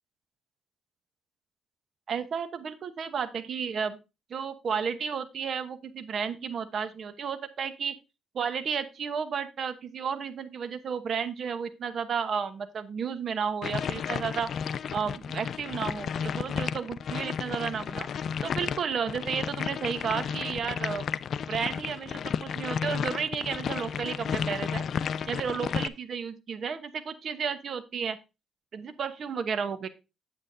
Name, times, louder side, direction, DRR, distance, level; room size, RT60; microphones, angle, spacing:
voice 1, 2.1-4.0 4.3-7.9 8.3-14.5 14.9-18.1 18.4-21.1 21.5-24.8 25.2-28.2 28.7-29.9, right 6 dB, 55° right, 10 dB, 1.0 m, -32 dB
sound 1, 13.6-25.9, left 7 dB, 60° left, 0.4 m, -32 dB
8.8 x 8.6 x 2.7 m, 0.27 s
cardioid pair, 90°, 0 cm